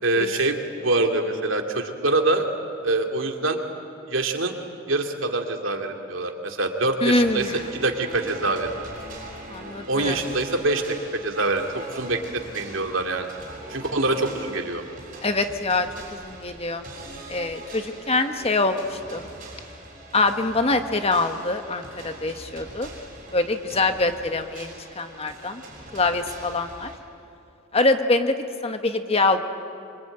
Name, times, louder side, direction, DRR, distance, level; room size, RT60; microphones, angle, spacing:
voice 1, 0.0-2.5 2.8-3.6 4.1-4.5 4.9-7.4 7.7-8.7 9.9-10.8 11.1-13.3 13.7-14.8, right 2 dB, 70° right, 3 dB, 2.6 m, -25 dB
voice 2, 7.0-7.7 9.5-10.2 15.2-16.8 17.3-19.2 20.1-22.9 23.3-25.6 25.9-26.9 27.7-29.4, left 2 dB, 30° left, 7 dB, 1.4 m, -24 dB
sound 1, 7.1-27.0, right 2 dB, 40° right, 6.9 m, -42 dB
25.5 x 25.0 x 9.2 m, 2.6 s
head